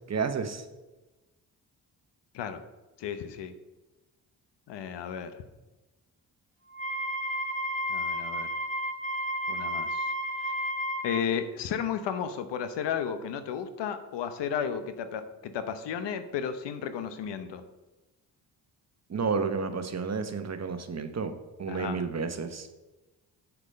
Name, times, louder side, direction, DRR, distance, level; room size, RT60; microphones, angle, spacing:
voice 1, 0.1-0.6 19.1-22.7, right 5 dB, 40° right, 8 dB, 1.1 m, -31 dB
voice 2, 3.0-3.5 4.7-5.4 7.9-8.5 9.5-10.1 10.4-10.5 11.0-17.6 21.7-22.0, left 8 dB, 75° left, 10 dB, 0.9 m, -33 dB
Wind instrument woodwind instrument, 6.7-11.2, equal, 20° left, 1.7 m, -32 dB
7.3 x 6.7 x 5.4 m, 1.1 s
supercardioid pair, 55°, 42 cm